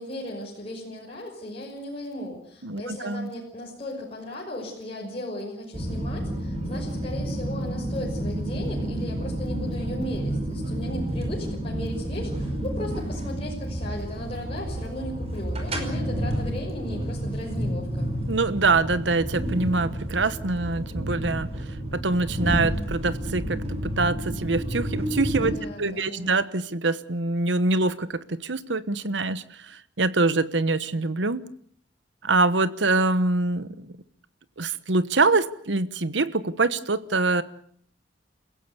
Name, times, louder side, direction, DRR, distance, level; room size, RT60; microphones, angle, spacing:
voice 1, 0.0-18.1 25.5-26.4, left 1 dB, 35° left, -3 dB, 5.9 m, -36 dB
voice 2, 2.6-3.3 18.3-21.5 21.9-25.5 25.8-31.4 32.2-33.7 34.6-37.4, right 3 dB, 80° right, 14 dB, 1.2 m, -24 dB
sound 1, 5.7-25.5, right 1 dB, 35° right, 5.2 m, -30 dB
29.0 x 16.5 x 8.2 m, 0.62 s
head